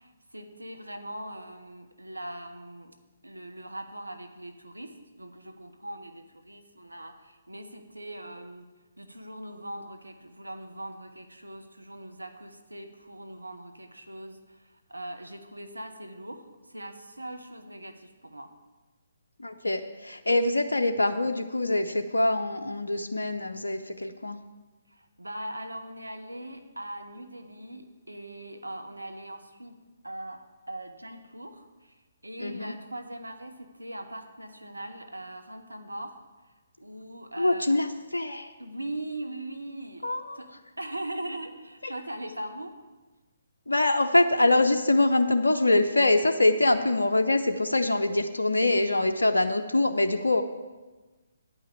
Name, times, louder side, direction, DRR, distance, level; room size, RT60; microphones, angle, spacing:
voice 1, 0.0-2.9 3.2-8.7 9.0-18.5 24.9-29.7 30.0-36.2 36.8-37.8 38.6-40.5 40.8-42.8, right 1 dB, 90° right, 7 dB, 1.0 m, -40 dB
voice 2, 19.4-24.4 32.4-32.7 37.4-38.5 40.0-40.4 43.7-50.4, left 2 dB, 80° left, 5 dB, 0.6 m, -24 dB
9.5 x 5.7 x 8.3 m, 1.2 s
figure-of-eight pair, 135°, 0 cm